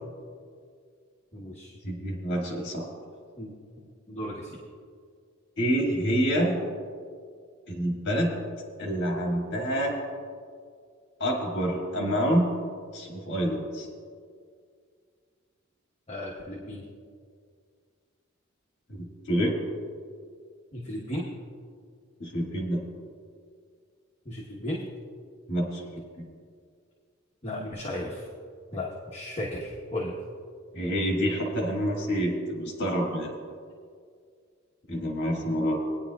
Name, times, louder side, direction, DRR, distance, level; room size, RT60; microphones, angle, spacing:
voice 1, 1.3-1.7 3.4-3.5 4.1-4.6 16.1-16.8 20.7-21.3 24.2-24.9 27.4-28.3 28.7-30.2, left 1 dB, 30° left, -4 dB, 1.1 m, -35 dB
voice 2, 1.8-2.9 5.6-6.6 7.7-8.4 8.8-9.9 11.2-12.5 12.9-13.9 18.9-19.5 22.2-22.9 25.5-26.3 30.7-33.4 34.9-35.8, equal, 55° left, -1 dB, 1.9 m, -27 dB
20.0 x 10.0 x 2.3 m, 2.1 s
head